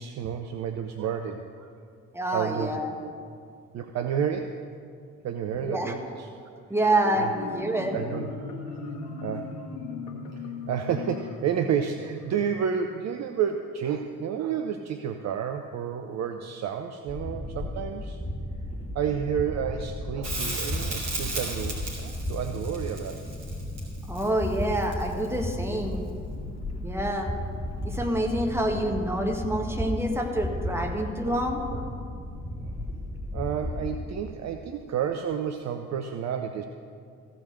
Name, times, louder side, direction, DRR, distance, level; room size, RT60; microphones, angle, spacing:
voice 1, 0.0-1.7 2.3-2.8 3.7-4.6 5.2-6.3 7.2-7.3 7.9-8.3 9.2-9.6 10.3-10.4 10.7-18.2 18.9-23.2 30.7-30.9 31.2-31.4 31.7-31.8 33.3-36.7, right 8 dB, 45° right, 7 dB, 0.6 m, -30 dB
voice 2, 2.1-2.9 5.6-6.0 6.7-8.0 24.1-26.0 26.8-27.3 27.8-31.6, right 1 dB, 5° right, 2 dB, 1.6 m, -27 dB
Marimba xylophone, 6.9-12.5, left 4 dB, 70° left, 1.5 m, -38 dB
sound 1, 17.1-34.0, left 1 dB, 15° left, 2.4 m, -34 dB
Crackle, 20.2-25.4 28.1-28.2, right 2 dB, 65° right, 2.5 m, -35 dB
15.0 x 5.1 x 6.5 m, 2.2 s
figure-of-eight pair, 40°, 40 cm